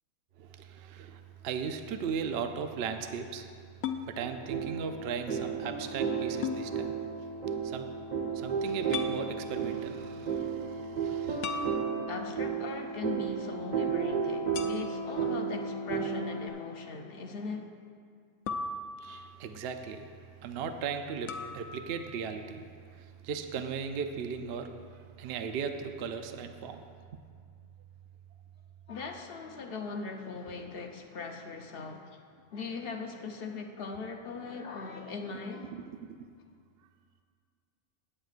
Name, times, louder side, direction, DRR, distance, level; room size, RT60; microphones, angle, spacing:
voice 1, 0.4-3.5 4.0-7.0 7.6-7.9 8.3-11.7 19.0-20.1 20.4-22.7 22.9-26.8, right 6 dB, 60° right, 7 dB, 0.7 m, -37 dB
sound 1, 3.8-4.1 6.4-6.6 8.9-9.2 11.4-12.3 14.5-15.2 18.5-19.4 21.3-21.7, left 5 dB, 80° left, 1.0 m, -37 dB
sound 2, 4.2-16.5, right 6 dB, 40° right, 0.9 m, -33 dB
voice 2, 12.1-17.7 28.9-32.3 32.5-35.8, left 4 dB, 50° left, 3 dB, 0.8 m, -40 dB
17.0 x 8.7 x 2.5 m, 2.2 s
omnidirectional pair, 1.5 m